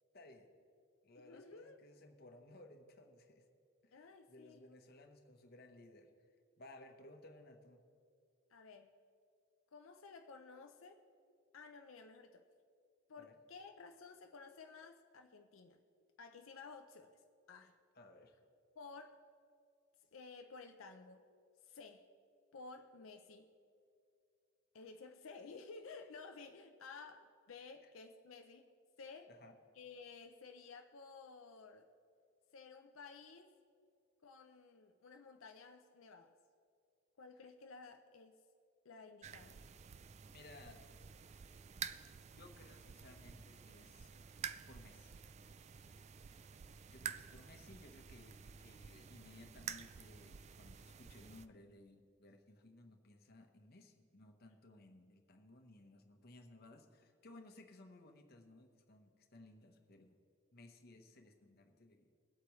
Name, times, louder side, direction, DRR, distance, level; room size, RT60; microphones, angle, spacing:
voice 1, 0.1-0.5 1.0-3.5 3.8-6.1 6.6-7.8 13.2-13.4 17.9-18.3 27.8-27.9 29.3-29.6 40.3-40.9 42.3-44.1 44.7-45.1 46.9-60.2 60.5-62.1, left 2 dB, 50° left, 4 dB, 1.1 m, -59 dB
voice 2, 1.2-1.8 3.9-4.8 8.5-8.9 9.7-11.0 11.5-12.4 13.1-15.8 16.2-17.2 17.5-17.7 18.8-19.3 20.1-21.2 21.6-22.1 22.5-23.5 24.7-28.7 29.0-29.3 29.8-31.9 32.5-33.5 34.2-36.3 37.2-38.3 38.8-39.6, left 4 dB, 90° left, 5 dB, 0.6 m, -54 dB
sound 1, 39.2-51.5, right 7 dB, 35° right, 0.3 m, -50 dB
21.0 x 8.3 x 3.1 m, 2.4 s
head